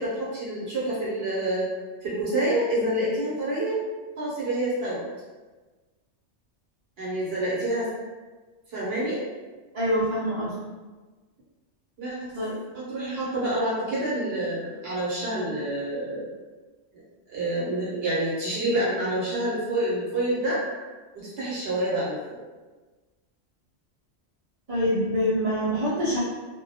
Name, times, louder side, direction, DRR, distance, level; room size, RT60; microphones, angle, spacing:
voice 1, 0.0-1.7 2.0-3.8 4.2-5.0 7.0-7.9 8.7-9.2 12.0-12.2 12.7-16.3 16.9-17.0 17.3-20.6 21.1-22.4, right 1 dB, 65° right, -7 dB, 0.9 m, -27 dB
voice 2, 9.7-10.5 12.3-12.5 24.7-26.2, equal, 45° right, -12 dB, 0.5 m, -25 dB
2.2 x 2.1 x 2.7 m, 1.3 s
omnidirectional pair, 1.2 m